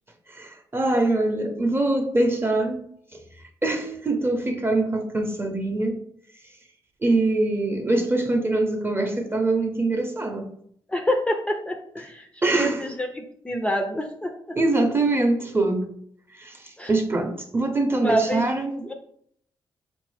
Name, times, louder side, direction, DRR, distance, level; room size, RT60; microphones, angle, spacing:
voice 1, 0.3-2.8 3.1-3.2 3.6-6.0 7.0-10.5 12.4-12.9 14.6-15.9 16.3-18.9, right 2 dB, 25° right, 0.7 m, -23 dB
voice 2, 10.9-14.6 16.8-16.9 18.0-18.4 18.7-18.9, equal, 10° left, 0.4 m, -27 dB
3.8 x 2.5 x 3.2 m
cardioid pair, 60°, 10 cm